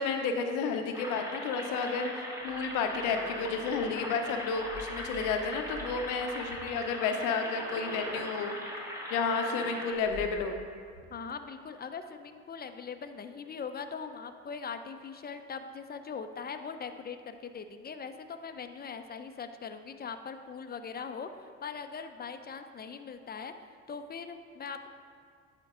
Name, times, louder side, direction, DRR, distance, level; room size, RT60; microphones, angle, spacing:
voice 1, 0.0-8.6 9.1-10.6, left 5 dB, 85° left, 5 dB, 0.7 m, -31 dB
sound 1, 0.9-9.9, left 1 dB, 10° right, 1.6 m, -40 dB
sound 2, 2.4-6.6 7.0-8.2 9.9-10.5 10.9-11.0, right 2 dB, 55° right, 1.2 m, -48 dB
voice 2, 11.1-23.5 23.9-24.9, left 5 dB, 30° left, 8 dB, 0.6 m, -41 dB
10.5 x 4.5 x 3.7 m, 2.1 s
supercardioid pair, 70°, 30 cm